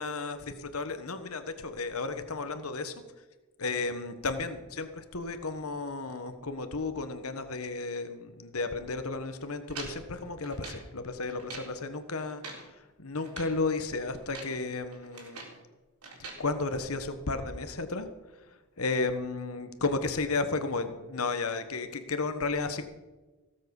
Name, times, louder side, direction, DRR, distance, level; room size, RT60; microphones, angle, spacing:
voice 1, 0.0-2.9 3.6-15.5 16.4-22.9, left 3 dB, 80° left, 9 dB, 1.3 m, -33 dB
sound 1, 9.7-10.9 11.3-11.7 12.2-12.7 13.2-13.6 14.1-14.6 14.9-15.6 16.0-16.4, right 3 dB, 85° right, 3.9 m, -44 dB
17.5 x 7.7 x 7.1 m, 1.2 s
head